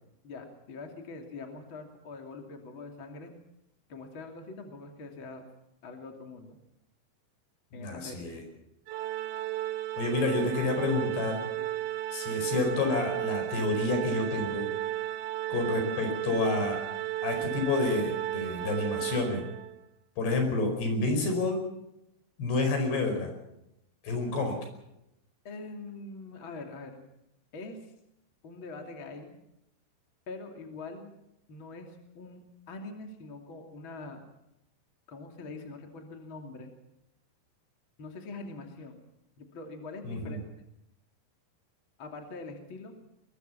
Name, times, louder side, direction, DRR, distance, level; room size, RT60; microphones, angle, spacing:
voice 1, 0.2-3.3 3.9-5.4 5.8-6.6 7.7-8.3 25.4-27.0 27.5-27.9 28.4-29.4 30.3-31.1 31.5-34.2 35.1-36.7 38.0-39.0 39.4-40.4 42.0-43.0, left 3 dB, 35° left, 3 dB, 2.8 m, -43 dB
voice 2, 7.7-8.4 10.0-11.4 12.1-14.7 15.5-16.8 17.2-19.4 20.2-21.6 22.4-23.3 24.0-24.6 40.0-40.4, left 3 dB, 65° left, 5 dB, 7.0 m, -29 dB
Organ, 8.9-19.8, right 15 dB, 80° right, 3.3 m, -34 dB
22.5 x 22.0 x 5.8 m, 0.84 s
omnidirectional pair, 5.3 m